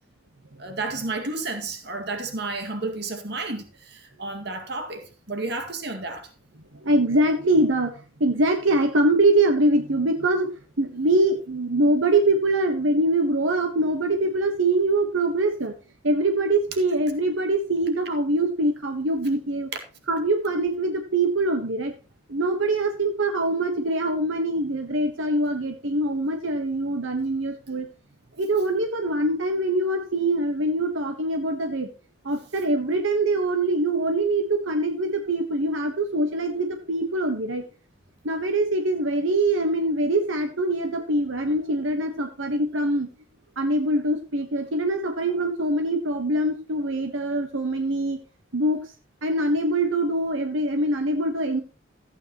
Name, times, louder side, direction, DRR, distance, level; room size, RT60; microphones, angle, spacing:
voice 1, 0.6-6.3, right 3 dB, 55° right, 2.1 m, -32 dB
voice 2, 6.7-10.5 10.8-15.7 16.0-19.7 20.1-21.9 22.3-27.9 28.4-31.9 32.2-37.6 38.2-43.1 43.6-48.2 48.5-48.8 49.2-51.6, right 1 dB, 80° right, 1.2 m, -23 dB
14.5 x 9.0 x 3.0 m
head